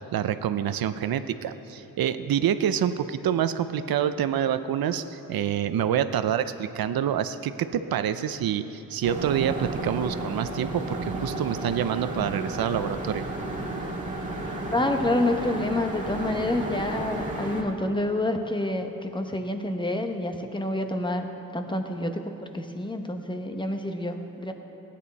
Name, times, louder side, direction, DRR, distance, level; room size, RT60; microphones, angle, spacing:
voice 1, 0.1-13.2, right 9 dB, 80° right, 11 dB, 0.6 m, -27 dB
sound 1, 9.0-17.6, right 2 dB, 20° right, 1.9 m, -33 dB
voice 2, 14.7-24.5, left 1 dB, 15° left, 5 dB, 0.8 m, -28 dB
17.0 x 10.0 x 4.1 m, 3.0 s
wide cardioid pair, 115°, 36 cm